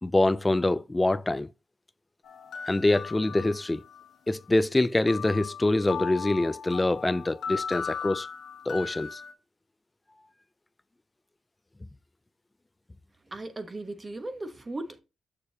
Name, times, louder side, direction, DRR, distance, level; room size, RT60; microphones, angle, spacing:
voice 1, 0.0-1.5 2.6-3.8 4.3-8.3 8.7-9.2, left 2 dB, 15° left, 0.3 m, -25 dB
sound 1, 2.2-4.1 5.1-9.3, left 6 dB, 75° left, 1.1 m, -37 dB
voice 2, 13.2-15.0, right 2 dB, 25° right, 1.0 m, -37 dB
6.7 x 6.7 x 2.8 m
cardioid pair, 105°, 0 cm